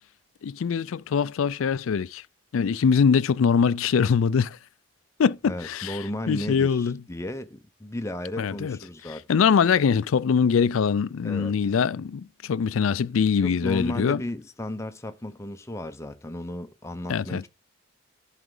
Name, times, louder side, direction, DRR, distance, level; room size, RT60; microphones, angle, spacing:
voice 1, 0.4-2.2 2.5-4.6 5.2-6.0 6.3-7.0 8.4-8.8 9.3-14.2 17.1-17.4, left 6 dB, 75° left, 0.4 m, -23 dB
voice 2, 5.4-9.3 11.2-11.5 13.4-17.5, left 1 dB, 15° left, 0.6 m, -34 dB
11.0 x 4.9 x 3.8 m
head